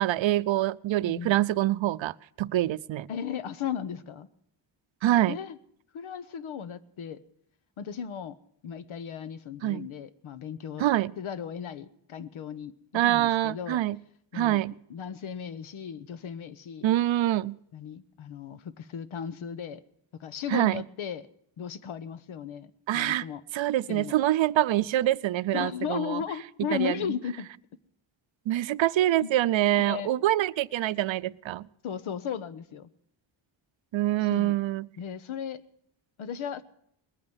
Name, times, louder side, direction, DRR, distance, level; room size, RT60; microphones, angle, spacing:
voice 1, 0.0-3.1 5.0-5.4 9.6-9.9 10.8-11.1 12.9-14.0 14.3-14.7 16.8-17.6 20.5-20.8 22.9-23.2 23.5-26.2 26.7-26.9 28.5-31.7 33.9-34.9, right 14 dB, 75° right, 16 dB, 0.6 m, -25 dB
voice 2, 3.1-4.3 5.2-5.6 5.9-7.2 7.8-8.4 8.6-10.8 11.2-13.8 14.3-14.6 14.9-16.9 17.7-19.8 20.2-21.3 21.6-23.4 23.9-24.1 25.5-27.5 29.2-29.3 29.8-30.1 31.8-32.9 34.2-34.5 35.0-35.6 36.2-36.6, left 8 dB, 85° left, 15 dB, 1.1 m, -36 dB
20.5 x 8.9 x 7.9 m, 0.71 s
wide cardioid pair, 130°, 47 cm